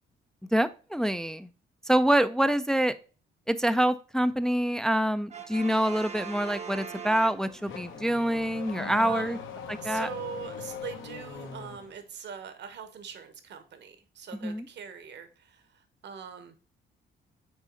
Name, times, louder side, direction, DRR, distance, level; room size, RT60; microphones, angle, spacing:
voice 1, 0.5-1.5 1.8-2.9 3.5-9.4 9.7-10.1 14.4-14.7, right 1 dB, 5° left, 0.3 m, -26 dB
Brass instrument, 5.3-8.0, right 6 dB, 35° right, 0.7 m, -41 dB
Car / Accelerating revving vroom, 6.9-12.0, left 5 dB, 80° left, 1.0 m, -41 dB
voice 2, 9.0-9.4 9.8-16.6, right 7 dB, 60° right, 1.1 m, -42 dB
6.3 x 4.1 x 3.9 m
cardioid pair, 90°, 20 cm